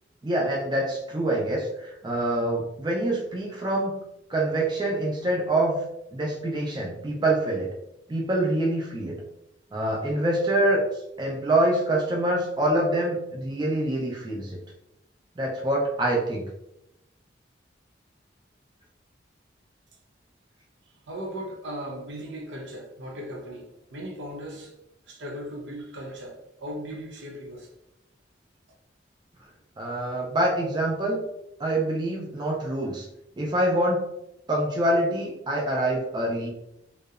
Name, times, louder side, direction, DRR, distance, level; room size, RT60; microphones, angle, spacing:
voice 1, 0.2-4.0 4.3-5.8 6.1-7.7 8.1-9.2 9.7-10.8 11.2-14.6 15.4-16.4 29.8-31.2 31.6-33.1 33.4-34.0 34.5-36.5, right 1 dB, 25° right, 0.4 m, -25 dB
voice 2, 21.1-24.7 25.1-27.7, equal, 80° right, 0.5 m, -37 dB
2.7 x 2.0 x 2.3 m
head